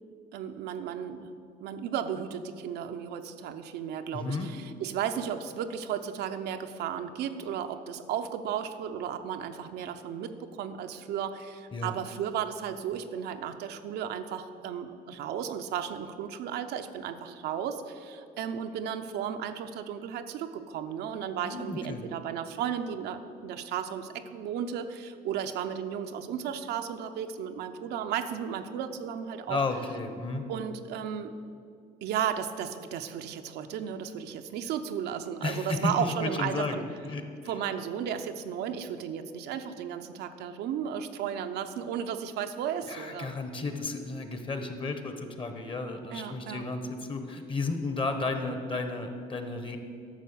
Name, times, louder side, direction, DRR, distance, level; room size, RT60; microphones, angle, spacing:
voice 1, 0.3-1.3 1.6-29.6 30.5-31.3 32.0-36.9 37.5-43.3 46.1-46.6, right 8 dB, 80° right, 7 dB, 0.7 m, -34 dB
voice 2, 4.1-4.5 11.7-12.0 21.4-22.0 29.5-30.5 35.4-37.2 42.8-49.8, left 3 dB, 30° left, 7 dB, 1.1 m, -33 dB
11.5 x 6.5 x 6.9 m, 2.4 s
cardioid pair, 110°, 17 cm